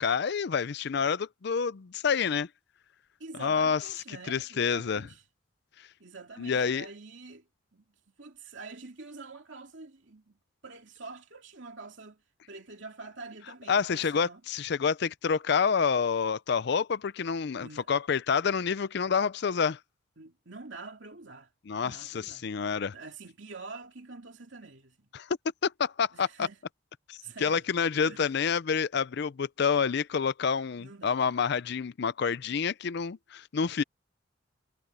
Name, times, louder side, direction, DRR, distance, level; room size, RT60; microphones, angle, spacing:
voice 1, 0.0-2.5 3.4-3.8 4.1-5.1 6.4-6.9 13.7-19.8 21.7-22.9 25.1-25.4 25.6-26.5 27.1-33.8, left 6 dB, 55° left, 0.4 m, -28 dB
voice 2, 3.2-5.2 6.0-7.4 7.7-7.8 8.2-10.4 10.6-12.2 12.5-14.4 17.6-17.9 20.2-21.5 21.7-22.4 22.9-25.0 26.1-26.6 27.2-27.6 28.0-28.3 30.8-31.3, right 3 dB, 65° right, 2.6 m, -46 dB
head